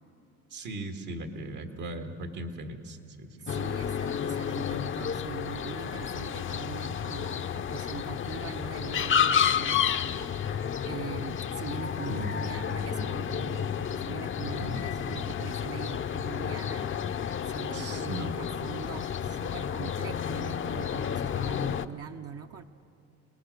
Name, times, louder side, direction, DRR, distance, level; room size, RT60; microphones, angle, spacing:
voice 1, 0.5-3.6 12.1-12.4 14.4-14.8 17.7-18.3, right 1 dB, 80° right, 4 dB, 1.9 m, -38 dB
voice 2, 3.4-16.9 17.4-22.6, right 7 dB, 55° right, 5 dB, 0.7 m, -42 dB
sound 1, 3.5-21.9, left 8 dB, 40° left, 0.6 m, -31 dB
23.5 x 19.5 x 6.6 m, 2.7 s
cardioid pair, 90°, 30 cm